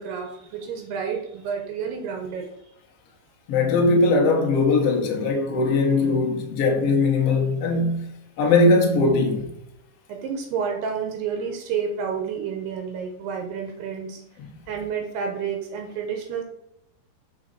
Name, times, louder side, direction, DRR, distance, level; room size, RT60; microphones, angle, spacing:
voice 1, 0.0-2.5 10.1-14.2 14.7-16.4, right 6 dB, 75° right, 2.7 m, -30 dB
voice 2, 3.5-8.1 8.4-9.5, left 3 dB, 90° left, 1.3 m, -20 dB
6.8 x 5.2 x 4.0 m
omnidirectional pair, 5.1 m